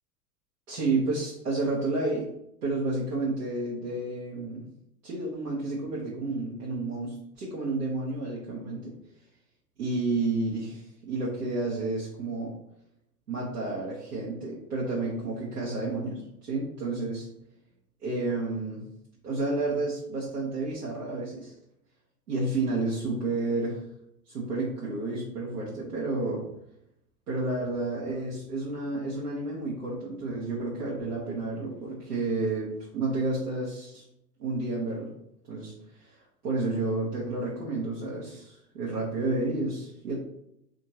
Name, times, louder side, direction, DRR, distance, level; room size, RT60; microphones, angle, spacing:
voice 1, 0.7-2.2 2.6-4.7 5.0-8.9 9.8-12.6 13.3-17.3 18.0-18.8 19.2-21.5 22.3-23.8 24.3-26.5 27.3-34.0 34.4-35.1 35.5-40.1, right 2 dB, 80° right, -5 dB, 1.0 m, -31 dB
3.6 x 2.5 x 2.8 m, 0.79 s
figure-of-eight pair, 90°, 47 cm